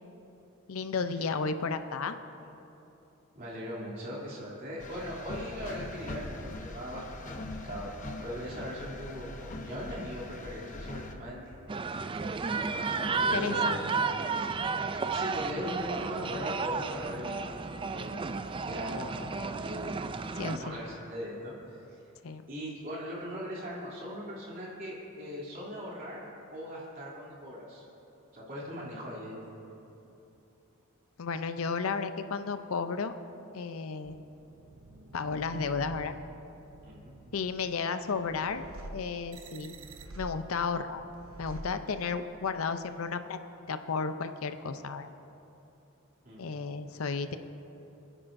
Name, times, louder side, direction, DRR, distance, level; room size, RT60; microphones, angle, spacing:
voice 1, 0.7-2.2 12.9-13.8 20.3-20.7 22.2-22.4 31.2-33.1 33.5-34.2 35.1-36.2 37.3-38.6 38.9-39.7 40.2-41.0 41.4-43.4 43.7-45.1 46.4-47.4, left 5 dB, 80° left, 9 dB, 0.6 m, -33 dB
voice 2, 3.3-7.2 7.6-7.9 8.2-9.3 9.5-11.9 13.2-13.9 15.1-17.5 17.9-18.2 18.6-19.2 19.5-20.0 20.6-21.8 22.5-26.2 26.5-27.8 28.3-29.6 36.8-37.1 46.2-46.4, equal, 45° right, -6 dB, 3.0 m, -39 dB
sound 1, 4.8-11.1, left 2 dB, 35° left, 0.8 m, -42 dB
sound 2, 11.7-20.6, right 4 dB, 25° right, 0.3 m, -32 dB
sound 3, 34.0-42.4, right 2 dB, 75° right, 0.7 m, -48 dB
26.0 x 9.9 x 2.6 m, 2.9 s
head